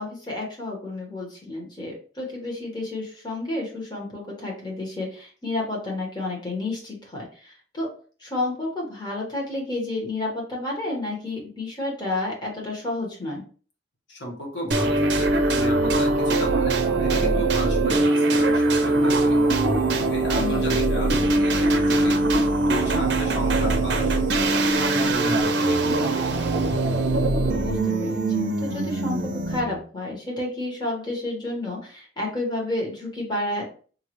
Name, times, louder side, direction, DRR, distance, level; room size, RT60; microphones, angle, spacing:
voice 1, 0.0-7.9 8.2-13.4 20.4-20.8 27.5-28.2 28.6-33.7, left 2 dB, 25° left, -3 dB, 1.2 m, -30 dB
voice 2, 14.1-19.5 19.9-22.2 22.7-26.5, equal, 75° left, -1 dB, 1.2 m, -35 dB
sound 1, 14.7-29.8, right 2 dB, 65° right, 0.6 m, -22 dB
5.5 x 2.3 x 3.0 m, 0.41 s
head